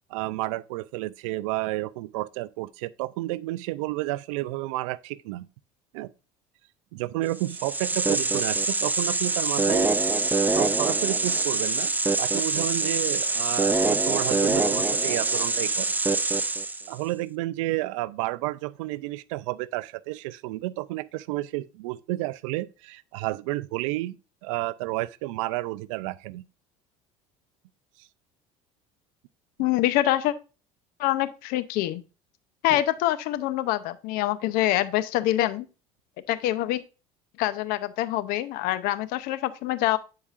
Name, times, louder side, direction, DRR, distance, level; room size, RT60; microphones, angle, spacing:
voice 1, 0.1-5.5 5.9-6.1 6.9-9.9 10.6-11.9 12.2-15.9 16.9-24.1 24.4-26.4 32.7-32.8, right 18 dB, 85° right, 0.4 m, -31 dB
sound 1, 7.4-16.9, right 3 dB, 10° right, 0.5 m, -25 dB
voice 2, 29.6-30.3 31.0-32.0 32.6-35.7 36.3-36.8 37.4-40.0, left 14 dB, 70° left, 0.7 m, -25 dB
10.0 x 4.8 x 2.5 m
supercardioid pair, 90°, 16 cm